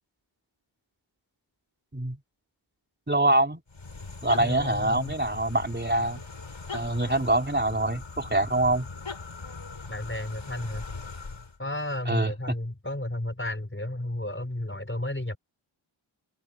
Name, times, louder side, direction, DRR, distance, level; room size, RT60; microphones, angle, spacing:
voice 1, 3.1-3.6 4.2-6.2 6.7-8.9 12.1-12.3, right 1 dB, 20° right, 4.1 m, -25 dB
sound 1, 3.7-11.6, left 4 dB, 65° left, 7.4 m, -40 dB
voice 2, 4.4-5.2 9.9-10.8 11.6-15.4, left 1 dB, 25° left, 4.7 m, -32 dB
wide cardioid pair, 60°, 50 cm